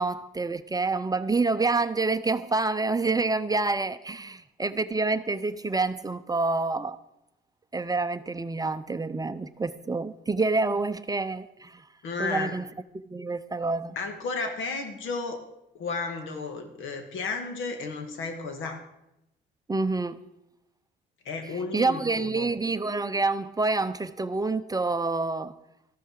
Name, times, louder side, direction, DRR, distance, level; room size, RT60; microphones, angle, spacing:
voice 1, 0.0-7.0 7.7-11.9 12.2-12.6 13.1-14.0 19.7-20.2 21.5-25.5, right 3 dB, 20° right, 0.6 m, -27 dB
voice 2, 12.0-12.6 14.0-15.4 15.7-18.8 21.3-22.5, left 4 dB, 80° left, 2.0 m, -33 dB
13.5 x 12.5 x 4.7 m
cardioid pair, 90°, 20 cm